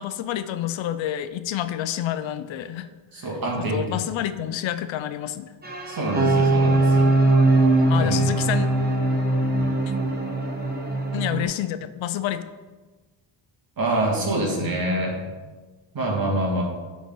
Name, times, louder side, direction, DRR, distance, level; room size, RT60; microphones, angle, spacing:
voice 1, 0.0-2.9 3.2-3.3 3.6-5.5 7.9-8.7 11.1-12.4, left 11 dB, 80° left, 12 dB, 0.6 m, -28 dB
voice 2, 3.1-4.0 5.9-7.1 8.0-8.3 13.8-15.2 15.9-16.6, right 1 dB, 50° right, -1 dB, 2.0 m, -26 dB
sound 1, 5.6-11.4, right 2 dB, 20° right, 1.3 m, -21 dB
9.5 x 4.1 x 3.9 m, 1.3 s
cardioid pair, 100°, 46 cm